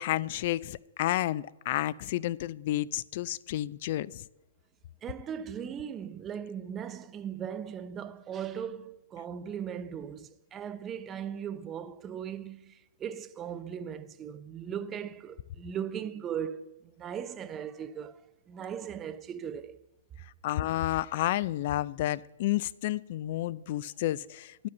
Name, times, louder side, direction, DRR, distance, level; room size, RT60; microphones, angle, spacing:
voice 1, 0.0-4.2 20.4-24.7, left 14 dB, 50° left, 0.3 m, -31 dB
voice 2, 5.0-19.8, right 8 dB, 20° right, 0.5 m, -38 dB
10.0 x 5.1 x 7.1 m
hypercardioid pair, 135°, 0 cm